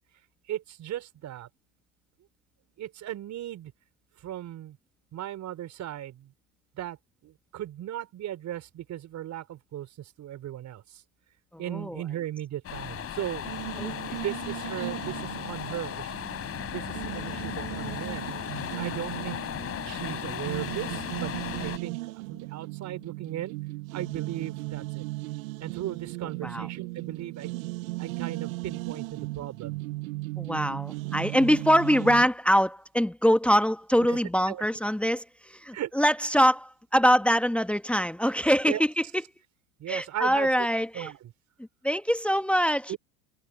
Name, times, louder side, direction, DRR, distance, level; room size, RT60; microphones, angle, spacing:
voice 1, 0.5-1.5 2.8-3.7 4.2-4.8 5.1-6.3 6.7-7.0 7.2-11.0 11.6-13.5 13.9-16.3 16.7-18.3 18.7-19.4 19.8-21.3 21.6-23.6 23.9-25.0 25.6-27.5 28.0-29.8 34.1-34.2 34.5-34.6 35.7-35.9 38.7-38.8 39.8-40.5 40.9-41.2 42.9-43.0, right 12 dB, 40° right, 5.1 m, -37 dB
voice 2, 11.5-12.0 13.8-14.2 26.4-26.7 30.4-39.0 39.9-41.1 41.8-43.0, equal, 5° left, 1.3 m, -24 dB
sound 1, 12.6-21.8, left 9 dB, 30° left, 3.9 m, -36 dB
sound 2, 13.4-32.3, right 22 dB, 65° right, 0.7 m, -37 dB
hypercardioid pair, 100°, 44 cm